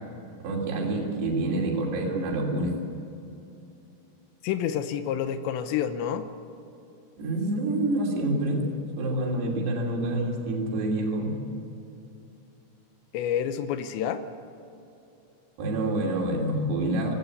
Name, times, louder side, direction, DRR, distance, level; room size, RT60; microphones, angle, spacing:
voice 1, 0.4-2.7 7.2-8.6 9.0-11.4 15.6-17.2, right 2 dB, 70° right, -2 dB, 5.1 m, -27 dB
voice 2, 4.4-6.3 13.1-14.3, left 9 dB, 85° left, 10 dB, 3.1 m, -28 dB
19.5 x 16.5 x 8.6 m, 2.7 s
omnidirectional pair, 5.1 m